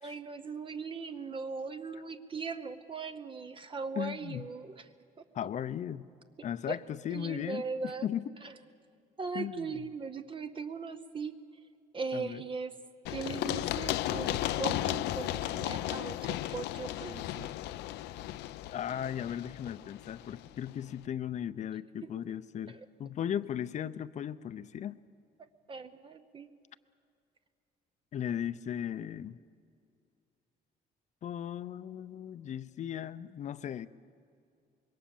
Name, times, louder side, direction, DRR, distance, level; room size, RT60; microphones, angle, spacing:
voice 1, 0.0-4.9 6.7-6.8 7.1-8.1 8.4-8.5 9.2-11.4 11.9-12.8 13.1-17.6 22.0-22.1 22.7-22.9 25.7-26.5, right 4 dB, 30° right, 9 dB, 0.8 m, -39 dB
voice 2, 4.0-4.5 5.3-6.1 6.4-7.6 8.0-8.2 9.3-9.7 12.1-12.4 18.7-25.0 28.1-29.4 31.2-33.9, left 9 dB, 45° left, 14 dB, 0.7 m, -37 dB
Run, 13.1-20.7, left 14 dB, 90° left, 0.6 m, -35 dB
25.5 x 22.0 x 7.1 m, 2.4 s
cardioid pair, 135°, 17 cm